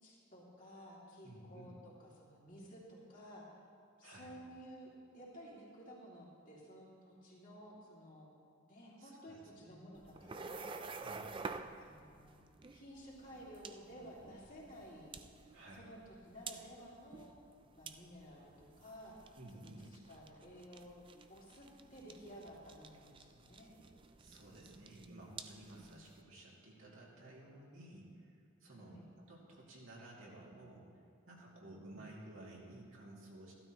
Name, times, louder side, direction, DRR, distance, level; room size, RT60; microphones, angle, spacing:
voice 1, 0.0-3.4 4.0-8.3 8.6-10.8 11.8-12.3 12.7-15.1 15.7-17.3 17.7-23.7 25.8-26.0 28.7-29.0 31.9-32.1, equal, 40° left, -5 dB, 2.6 m, -54 dB
voice 2, 1.2-1.7 4.0-4.3 9.0-9.4 9.7-9.8 11.0-11.2 15.5-15.9 19.3-19.9 24.2-28.3 28.6-30.9 31.3-33.5, right 1 dB, 75° right, -4 dB, 2.4 m, -54 dB
sound 1, 9.9-26.2, right 4 dB, 25° right, 0.3 m, -51 dB
15.0 x 12.5 x 3.0 m, 2.5 s
head